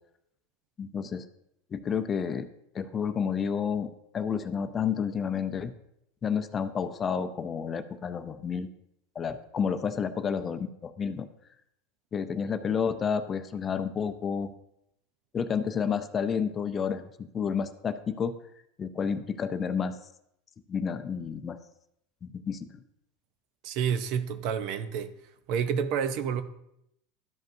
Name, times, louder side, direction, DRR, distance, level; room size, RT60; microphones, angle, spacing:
voice 1, 0.8-1.2 1.7-2.5 2.7-3.9 4.1-5.7 6.2-8.7 9.2-11.3 12.1-14.5 15.3-18.3 18.8-20.0 20.7-21.6 22.2-22.7, left 6 dB, 25° left, 0.5 m, -30 dB
voice 2, 23.6-25.1 25.5-26.4, right 7 dB, 60° right, 0.6 m, -29 dB
12.5 x 5.1 x 2.6 m
supercardioid pair, 115°, 0 cm